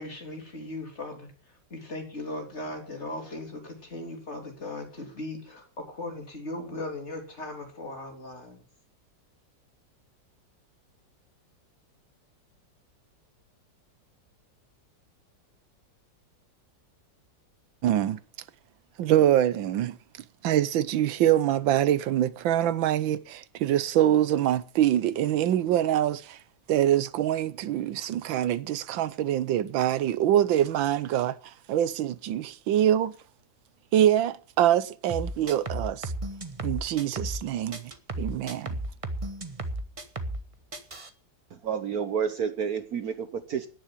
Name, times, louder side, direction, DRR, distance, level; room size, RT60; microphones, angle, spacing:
voice 1, 0.0-8.6, left 2 dB, 35° left, 3.7 m, -38 dB
voice 2, 17.8-18.2 19.0-20.0 20.4-26.4 26.7-33.1 33.9-36.1 36.6-37.9 38.2-38.8, right 11 dB, 90° right, 1.6 m, -24 dB
sound 1, 35.1-37.4 37.7-40.4 40.7-41.1, right 1 dB, 20° right, 1.0 m, -34 dB
voice 3, 41.5-43.7, right 7 dB, 55° right, 1.3 m, -30 dB
11.0 x 10.0 x 7.5 m
omnidirectional pair, 2.0 m